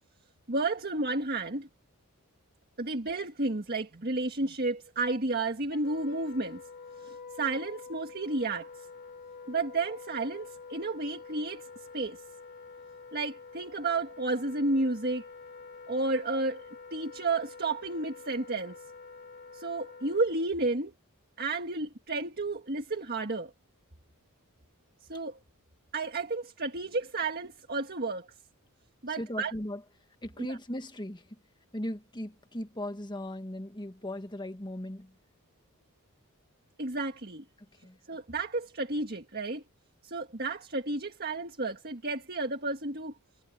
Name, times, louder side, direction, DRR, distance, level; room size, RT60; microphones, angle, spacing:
voice 1, 0.5-1.7 2.8-6.6 7.0-8.7 9.5-11.7 11.9-12.2 13.1-15.2 15.9-18.8 19.5-20.9 21.4-23.5 25.1-25.4 25.9-28.3 29.0-29.5 36.8-37.4 38.1-39.6 40.0-43.1, right 2 dB, 45° right, 1.7 m, -32 dB
Wind instrument woodwind instrument, 5.7-20.6, left 4 dB, 45° left, 2.5 m, -47 dB
voice 2, 29.1-29.8 30.2-31.4 31.7-35.1 37.8-38.0, left 1 dB, 20° left, 1.6 m, -38 dB
head